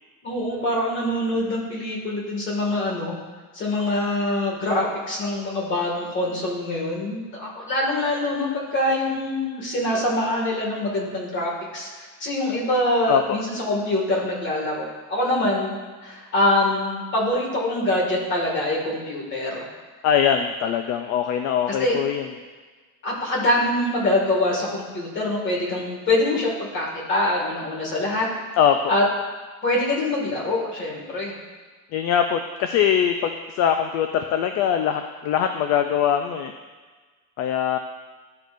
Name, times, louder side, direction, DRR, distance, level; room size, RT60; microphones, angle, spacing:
voice 1, 0.2-3.1 3.5-15.7 16.0-19.6 21.8-21.9 23.0-28.2 28.9-29.0 29.6-31.3, left 1 dB, 35° left, -3 dB, 2.0 m, -24 dB
voice 2, 13.1-13.4 20.0-22.3 28.6-28.8 31.9-36.5 37.4-37.8, left 8 dB, 50° left, 6 dB, 0.4 m, -22 dB
12.5 x 5.2 x 2.5 m, 1.4 s
cardioid pair, 175°, 34 cm